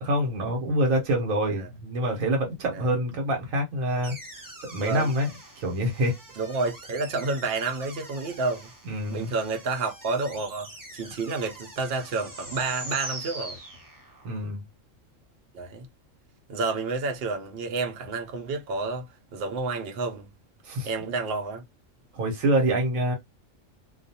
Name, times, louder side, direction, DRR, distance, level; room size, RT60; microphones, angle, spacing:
voice 1, 0.0-4.1 4.6-6.2 8.8-9.3 14.2-14.6 20.6-20.9 22.1-23.1, right 1 dB, 85° right, 1.2 m, -26 dB
sound 1, 4.0-14.3, right 1 dB, 20° right, 0.7 m, -43 dB
voice 2, 4.8-5.1 6.4-8.7 9.1-13.6 15.5-15.9 16.5-19.1 19.3-20.3 20.8-21.6, right 3 dB, 55° right, 0.8 m, -30 dB
2.4 x 2.3 x 2.7 m
omnidirectional pair, 1.3 m